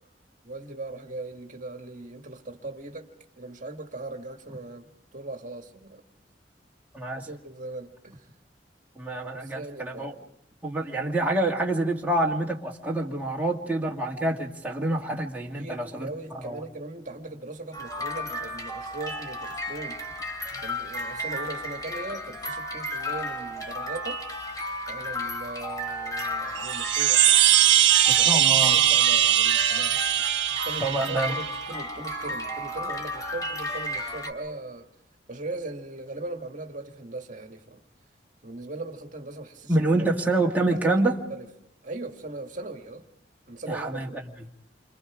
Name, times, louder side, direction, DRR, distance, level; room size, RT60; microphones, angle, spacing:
voice 1, 0.4-3.1 3.4-6.0 7.1-8.3 9.3-10.3 15.5-20.1 20.6-24.2 24.9-27.3 28.2-30.0 30.6-34.9 35.3-37.8 38.4-40.1 40.7-41.5 41.8-43.0 43.5-44.2, right 2 dB, 45° right, 3 dB, 1.9 m, -39 dB
voice 2, 6.9-7.3 9.0-10.1 10.6-16.1 16.4-16.6 28.1-28.8 30.8-31.3 39.7-41.2 43.7-44.1, right 2 dB, 10° right, -2 dB, 2.0 m, -26 dB
sound 1, 17.7-34.3, left 1 dB, 20° left, 3.4 m, -33 dB
sound 2, 26.6-31.6, right 13 dB, 85° right, 0.9 m, -21 dB
29.5 x 26.0 x 5.0 m, 0.73 s
head